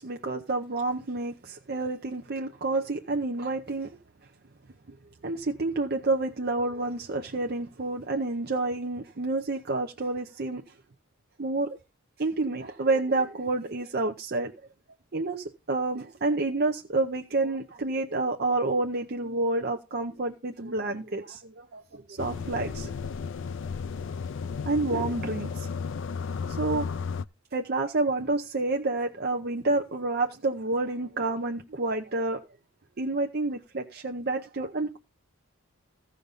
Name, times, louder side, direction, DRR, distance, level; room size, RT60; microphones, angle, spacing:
voice 1, 0.0-3.9 5.2-10.6 11.4-11.8 12.2-14.5 15.1-22.9 24.6-25.7 26.5-26.9 27.5-32.4 33.0-35.0, right 2 dB, 50° right, 0.8 m, -29 dB
sound 1, 22.2-27.2, left 5 dB, 60° left, 0.4 m, -34 dB
15.0 x 5.2 x 4.1 m
head